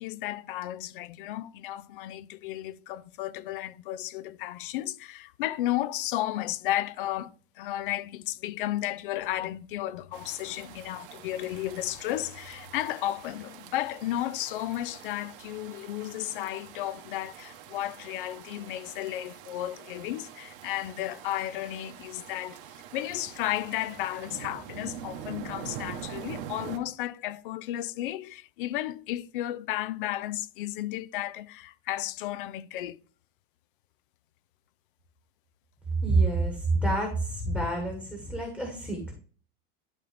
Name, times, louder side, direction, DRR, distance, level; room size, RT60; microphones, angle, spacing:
voice 1, 0.0-22.6 22.9-33.0, left 14 dB, 65° left, 0.6 m, -33 dB
sound 1, 10.1-26.8, right 10 dB, 65° right, 1.3 m, -45 dB
voice 2, 36.0-39.1, right 2 dB, 5° left, 1.3 m, -27 dB
11.5 x 4.0 x 3.4 m
supercardioid pair, 175°, 29 cm